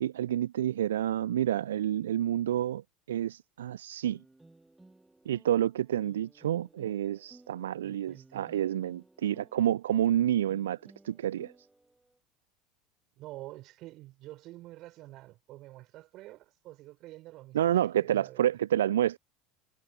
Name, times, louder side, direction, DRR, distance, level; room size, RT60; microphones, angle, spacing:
voice 1, 0.0-4.2 5.3-11.5 17.5-19.2, right 11 dB, 75° right, 0.4 m, -29 dB
sound 1, 4.1-12.2, right 2 dB, 10° right, 2.5 m, -59 dB
voice 2, 7.8-8.5 13.2-17.7 18.0-18.5, right 17 dB, 50° right, 5.7 m, -48 dB
figure-of-eight pair, 70°, 0 cm